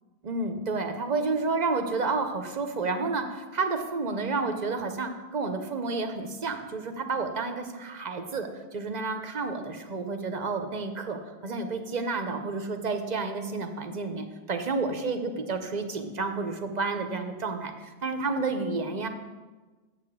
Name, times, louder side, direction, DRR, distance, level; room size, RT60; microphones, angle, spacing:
voice 1, 0.2-8.5 8.7-17.7 18.0-19.1, right 3 dB, 45° right, 6 dB, 0.9 m, -30 dB
7.4 x 6.0 x 7.5 m, 1.3 s
omnidirectional pair, 1.1 m